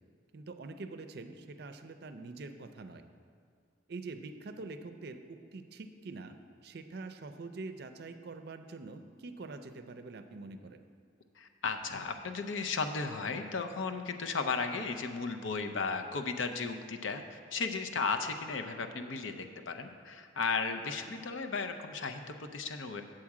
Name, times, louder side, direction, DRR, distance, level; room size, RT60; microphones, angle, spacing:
voice 1, 0.3-3.0 3.9-6.4 6.6-10.8, right 3 dB, 55° right, 8 dB, 0.5 m, -45 dB
voice 2, 11.4-23.0, left 4 dB, 85° left, 6 dB, 0.6 m, -35 dB
7.7 x 4.8 x 7.3 m, 2.1 s
head